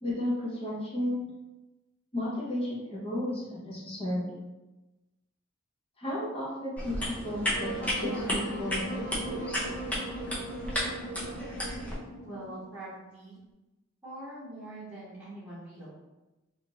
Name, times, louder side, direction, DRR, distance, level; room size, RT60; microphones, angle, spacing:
voice 1, 0.0-1.3 2.1-4.3 6.0-7.7 8.0-9.6, left 1 dB, 25° left, -6 dB, 0.9 m, -33 dB
sound 1, 6.8-11.9, equal, 5° left, 0.5 m, -34 dB
Wind instrument woodwind instrument, 7.5-12.6, right 2 dB, 80° left, 1.3 m, -39 dB
voice 2, 12.2-13.4 14.0-15.9, right 1 dB, 10° right, -15 dB, 1.1 m, -43 dB
2.7 x 2.4 x 2.9 m, 1.0 s
head